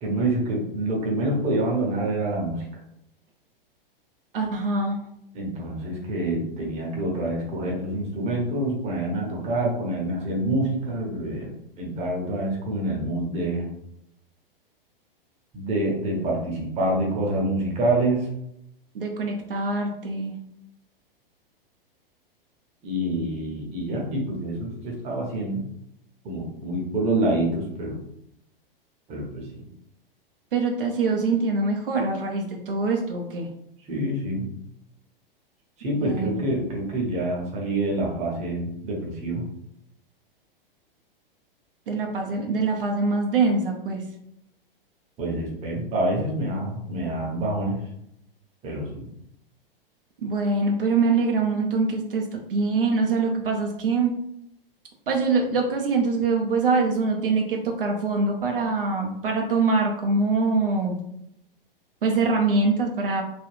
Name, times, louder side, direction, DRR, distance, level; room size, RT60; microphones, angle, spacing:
voice 1, 0.0-2.6 5.3-13.7 15.5-18.3 22.8-25.6 26.2-28.0 29.1-29.7 33.9-34.5 35.8-39.4 45.2-47.8 48.6-49.1, right 1 dB, 20° right, -1 dB, 0.8 m, -27 dB
voice 2, 4.3-5.0 18.9-20.3 30.5-33.5 36.0-36.3 41.9-44.0 50.2-54.2 55.1-60.9 62.0-63.2, right 3 dB, 70° right, 1 dB, 0.6 m, -24 dB
3.4 x 2.2 x 2.6 m, 0.78 s
figure-of-eight pair, 105°, 29 cm